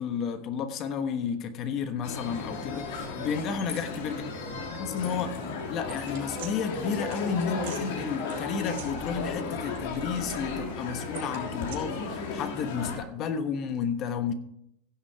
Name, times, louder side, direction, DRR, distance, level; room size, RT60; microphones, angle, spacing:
voice 1, 0.0-4.2 4.7-5.4 5.7-14.3, left 6 dB, 40° left, 9 dB, 1.2 m, -32 dB
sound 1, 2.0-13.0, left 4 dB, 85° left, 2.6 m, -35 dB
sound 2, 5.9-6.5 7.1-7.2 7.6-7.8 8.3-9.4 9.7-10.7 11.1-11.8, right 7 dB, 80° right, 3.8 m, -43 dB
16.0 x 6.5 x 4.7 m, 0.75 s
supercardioid pair, 145°, 0 cm